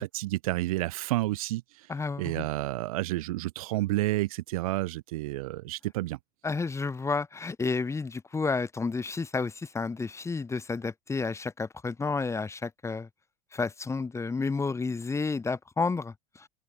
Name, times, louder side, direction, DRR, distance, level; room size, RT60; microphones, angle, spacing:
voice 1, 0.0-1.6 2.2-6.2, right 18 dB, 80° right, 1.7 m, -30 dB
voice 2, 1.9-2.5 6.4-13.1 13.5-16.5, left 4 dB, 15° left, 1.8 m, -31 dB
open air
supercardioid pair, 105°, 18 cm